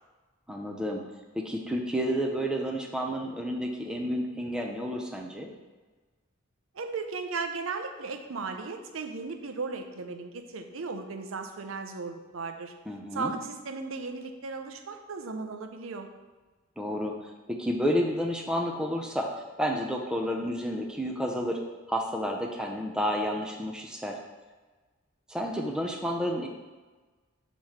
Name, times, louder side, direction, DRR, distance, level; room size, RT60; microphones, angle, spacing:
voice 1, 0.5-1.0 1.3-5.5 12.9-13.3 16.8-19.3 19.6-21.6 21.9-24.2 25.3-26.5, equal, 5° right, 1 dB, 0.6 m, -30 dB
voice 2, 6.7-12.7 13.1-16.1, right 4 dB, 80° right, 6 dB, 0.6 m, -36 dB
6.8 x 3.1 x 5.5 m, 1.3 s
head